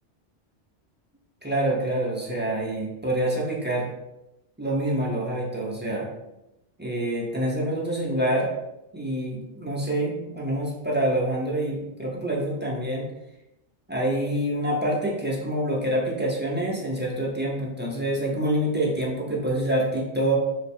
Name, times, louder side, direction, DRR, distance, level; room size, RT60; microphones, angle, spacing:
voice 1, 1.4-3.9 4.6-6.1 6.8-8.5 8.9-13.1 13.9-20.4, right 1 dB, 15° right, -4 dB, 0.4 m, -26 dB
3.3 x 2.1 x 4.2 m, 0.91 s
omnidirectional pair, 1.2 m